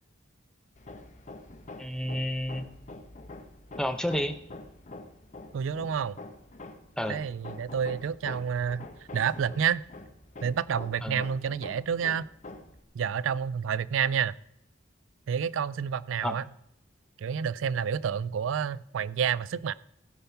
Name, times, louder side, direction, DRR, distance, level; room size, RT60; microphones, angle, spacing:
Hammer, 0.8-12.8, left 2 dB, 40° left, 1.0 m, -46 dB
voice 1, 1.8-2.6 3.8-4.4 7.0-7.2 11.0-11.2 16.2-16.4, equal, 5° left, 0.7 m, -30 dB
voice 2, 5.5-6.2 7.1-8.8 9.1-9.8 10.4-12.3 12.9-14.3 15.3-16.4 17.2-19.7, right 7 dB, 85° right, 0.4 m, -29 dB
17.0 x 5.6 x 5.7 m
head